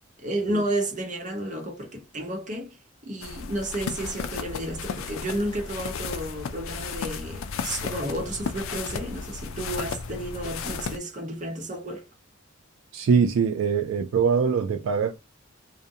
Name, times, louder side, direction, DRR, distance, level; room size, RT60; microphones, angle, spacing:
voice 1, 0.2-2.8 3.0-12.0, right 1 dB, 40° right, 0.9 m, -32 dB
sound 1, 3.2-11.0, left 5 dB, 80° left, 0.4 m, -34 dB
voice 2, 12.9-15.2, right 6 dB, 75° right, 0.3 m, -23 dB
2.4 x 2.1 x 2.7 m
head